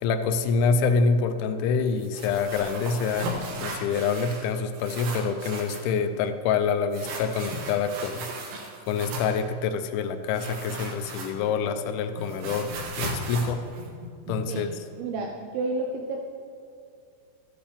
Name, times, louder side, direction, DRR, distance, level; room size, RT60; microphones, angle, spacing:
voice 1, 0.0-3.3 3.6-8.3 8.9-13.6 14.3-14.9, left 5 dB, 85° left, 8 dB, 2.7 m, -26 dB
sound 1, 2.0-4.5 4.7-5.9 6.9-9.4 10.3-11.6 11.9-14.6, right 2 dB, 65° right, 3.4 m, -36 dB
voice 2, 15.0-16.2, right 3 dB, 85° right, 1 dB, 3.3 m, -30 dB
13.5 x 10.5 x 3.4 m, 2.4 s
omnidirectional pair, 5.9 m